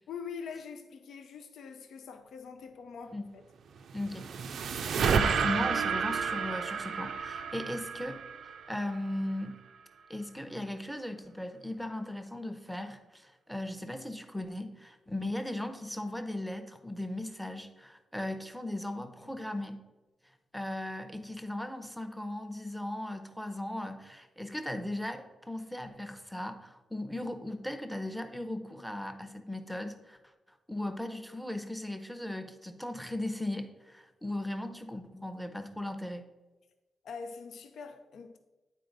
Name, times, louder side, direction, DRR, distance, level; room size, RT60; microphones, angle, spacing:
voice 1, 0.1-3.4 19.2-19.4 37.0-38.4, left 6 dB, 80° left, 0.5 m, -44 dB
sound 1, 3.8-9.2, right 6 dB, 75° right, 0.4 m, -31 dB
voice 2, 3.9-4.3 5.1-8.2 8.7-9.6 10.1-19.8 20.5-30.2 30.7-36.2, left 1 dB, ahead, 0.6 m, -37 dB
9.2 x 4.2 x 3.9 m
cardioid pair, 115°, 0 cm